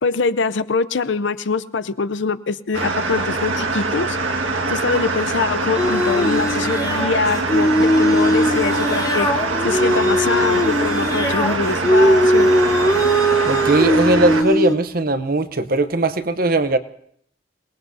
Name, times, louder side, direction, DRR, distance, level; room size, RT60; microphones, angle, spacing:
voice 1, 0.0-4.2 4.7-9.3 9.6-12.5, left 4 dB, 70° left, 0.6 m, -23 dB
sound 1, 2.7-14.4, right 3 dB, 80° right, 1.7 m, -23 dB
sound 2, 5.8-14.8, equal, 20° left, 0.8 m, -19 dB
voice 2, 13.5-16.8, right 2 dB, 45° right, 0.7 m, -19 dB
27.5 x 19.0 x 2.7 m
head